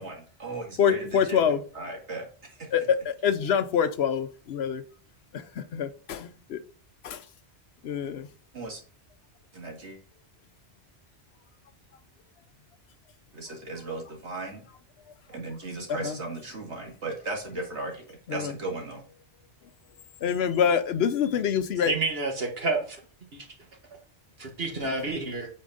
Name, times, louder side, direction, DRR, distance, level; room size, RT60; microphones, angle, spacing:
voice 1, 0.0-2.7 8.5-8.8 9.5-10.0 13.3-14.6 15.3-19.0, right 2 dB, 80° right, 2.3 m, -37 dB
voice 2, 0.8-1.6 2.7-4.8 5.3-6.6 7.0-7.2 7.8-8.3 15.9-16.2 18.3-18.5 20.2-22.0, left 7 dB, 70° left, 0.9 m, -26 dB
voice 3, 21.9-23.0 23.3-23.5 24.4-25.5, right 3 dB, 60° right, 1.9 m, -29 dB
8.3 x 4.3 x 3.9 m
omnidirectional pair, 1.1 m